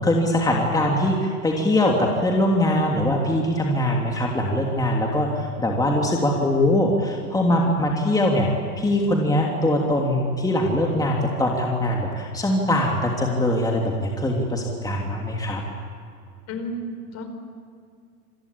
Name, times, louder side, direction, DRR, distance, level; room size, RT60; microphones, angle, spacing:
voice 1, 0.0-8.5 8.8-15.6, left 1 dB, 10° left, -1 dB, 3.1 m, -22 dB
voice 2, 16.5-17.3, equal, 35° left, 7 dB, 4.7 m, -32 dB
27.5 x 21.0 x 8.7 m, 2.4 s
hypercardioid pair, 110°, 46 cm